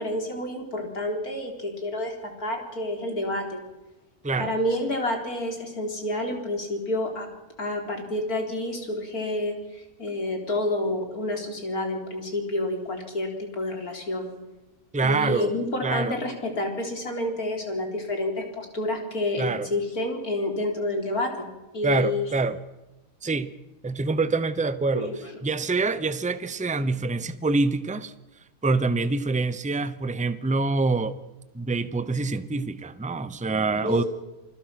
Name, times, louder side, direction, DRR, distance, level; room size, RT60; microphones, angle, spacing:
voice 1, 0.0-3.6 4.4-7.3 7.6-14.3 15.0-21.5 21.7-22.3 24.9-25.2 33.8-34.0, left 1 dB, 80° left, 3 dB, 4.4 m, -29 dB
voice 2, 14.9-15.5 15.8-16.2 19.4-19.7 21.8-22.6 23.2-23.5 23.8-25.1 25.4-28.1 28.6-31.2 31.5-34.0, right 3 dB, 5° right, 14 dB, 0.6 m, -25 dB
28.0 x 20.5 x 6.0 m, 1.0 s
omnidirectional pair, 1.6 m